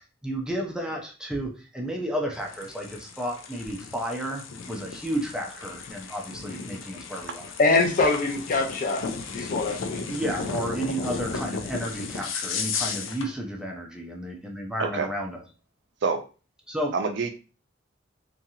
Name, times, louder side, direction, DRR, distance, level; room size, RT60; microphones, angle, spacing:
voice 1, 0.0-7.5 9.4-9.5 10.1-15.4 16.7-16.9, right 1 dB, 5° right, 0.5 m, -32 dB
sound 1, 2.3-13.3, left 5 dB, 85° left, 0.4 m, -35 dB
voice 2, 7.6-10.0, left 3 dB, 45° left, 0.7 m, -24 dB
voice 3, 16.9-17.3, right 4 dB, 65° right, 0.5 m, -26 dB
2.8 x 2.3 x 2.7 m
head